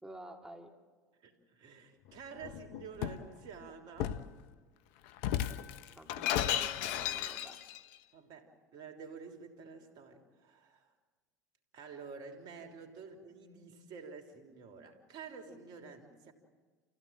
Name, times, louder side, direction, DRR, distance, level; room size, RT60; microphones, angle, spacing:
voice 1, 0.0-0.7 5.2-5.4 5.9-7.6, right 1 dB, 5° right, 2.7 m, -50 dB
voice 2, 1.2-4.2 8.1-10.9 11.7-16.3, right 5 dB, 55° right, 3.5 m, -49 dB
Shatter, 2.4-3.3 4.0-4.3 5.2-7.8, left 11 dB, 70° left, 0.9 m, -34 dB
29.0 x 16.0 x 7.5 m
hypercardioid pair, 75°, 8 cm